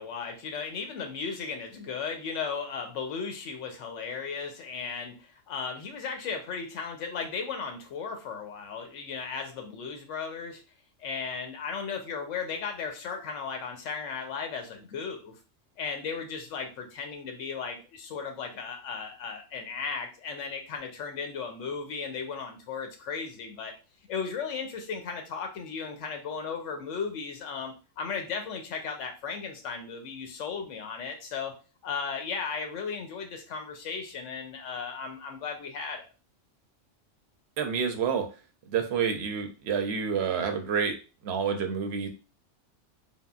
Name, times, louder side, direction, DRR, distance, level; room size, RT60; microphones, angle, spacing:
voice 1, 0.0-10.6 11.0-15.3 15.8-23.7 24.1-31.6 31.8-36.1, left 5 dB, 85° left, 4 dB, 0.9 m, -36 dB
voice 2, 37.6-38.3 38.7-41.0 41.2-42.1, right 6 dB, 65° right, 5 dB, 0.8 m, -28 dB
3.5 x 2.0 x 2.3 m, 0.33 s
omnidirectional pair, 1.3 m